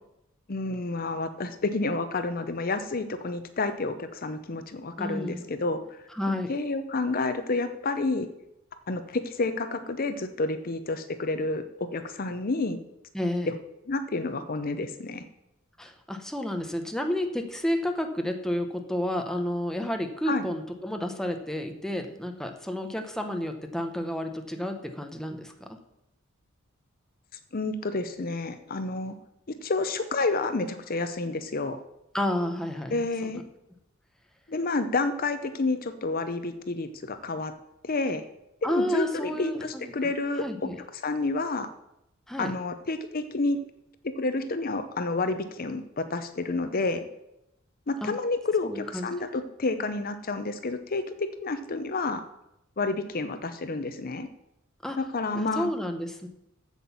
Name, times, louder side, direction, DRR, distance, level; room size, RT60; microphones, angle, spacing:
voice 1, 0.5-5.8 6.3-8.3 8.9-12.8 13.5-13.6 13.9-15.2 20.3-20.4 27.5-29.1 29.6-31.8 32.9-33.4 34.5-37.5 37.8-38.2 38.6-40.7 41.0-41.7 42.4-43.6 44.0-47.0 47.9-52.2 52.8-54.3 55.0-55.7, left 3 dB, 45° left, 10 dB, 0.7 m, -29 dB
voice 2, 5.0-5.4 6.1-6.5 13.1-13.5 15.8-25.8 32.1-33.0 33.3-33.4 38.6-39.9 40.4-40.8 42.3-42.5 48.0-48.1 48.6-49.1 54.8-55.0 55.3-56.3, left 1 dB, ahead, 4 dB, 0.9 m, -31 dB
8.2 x 7.8 x 7.1 m, 0.85 s
head